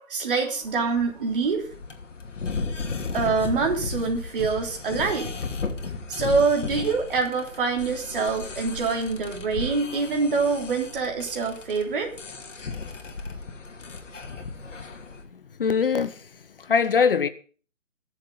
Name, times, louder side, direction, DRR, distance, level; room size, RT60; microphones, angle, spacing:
voice 1, 0.0-1.6 3.1-5.3 6.1-12.1, right 4 dB, 40° right, 3.5 m, -25 dB
sound 1, 0.6-15.2, left 4 dB, 60° left, 2.8 m, -35 dB
voice 2, 15.3-17.3, left 6 dB, 40° left, 0.9 m, -23 dB
22.0 x 7.6 x 3.9 m
figure-of-eight pair, 155°, 41 cm